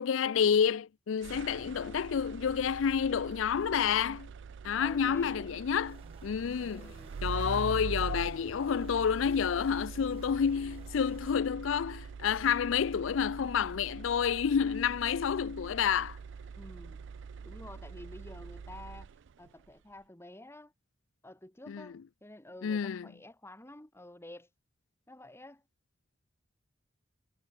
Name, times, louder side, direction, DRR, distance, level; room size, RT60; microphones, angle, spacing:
voice 1, 0.0-4.3 4.6-6.9 7.2-16.2 21.7-21.9 22.6-23.1, left 7 dB, 80° left, 0.4 m, -29 dB
sound 1, 1.2-19.5, right 5 dB, 65° right, 0.4 m, -43 dB
voice 2, 1.6-2.0 4.7-5.5 6.6-7.2 16.5-17.1 17.4-19.1 19.4-20.7 21.2-24.5 25.1-25.6, left 1 dB, 15° left, 2.3 m, -50 dB
sound 2, 5.8-11.3, right 2 dB, 30° right, 1.3 m, -57 dB
head